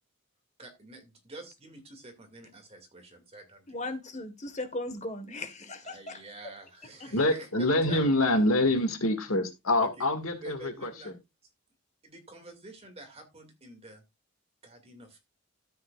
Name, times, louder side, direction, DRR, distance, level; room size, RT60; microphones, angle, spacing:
voice 1, 0.6-3.8 5.8-8.4 9.8-10.0 10.4-11.1 12.0-14.0 14.6-15.2, right 2 dB, 30° right, 2.4 m, -48 dB
voice 2, 3.7-6.2, left 2 dB, 35° left, 1.5 m, -37 dB
voice 3, 7.1-11.2, left 1 dB, 85° left, 2.1 m, -26 dB
13.0 x 7.9 x 2.5 m
head